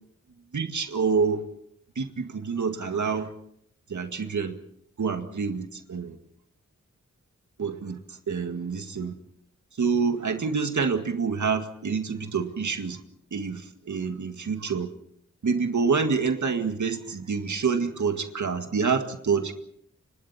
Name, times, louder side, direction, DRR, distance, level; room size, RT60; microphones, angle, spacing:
voice 1, 0.5-1.4 2.0-3.3 3.9-4.6 5.0-6.2 7.6-9.1 9.8-13.0 13.3-14.9 15.4-19.5, right 5 dB, 80° right, 6 dB, 2.0 m, -27 dB
29.5 x 25.5 x 4.4 m, 0.69 s
wide cardioid pair, 110°, 29 cm